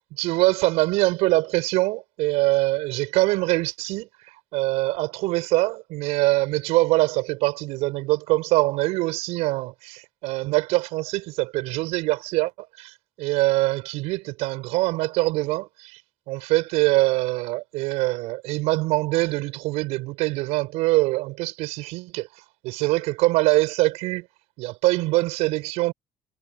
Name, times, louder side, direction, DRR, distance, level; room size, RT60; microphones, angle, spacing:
voice 1, 0.1-4.1 4.5-16.0 16.3-22.3 22.6-24.3 24.6-25.9, right 21 dB, 80° right, 6.0 m, -23 dB
hypercardioid pair, 60°, 11 cm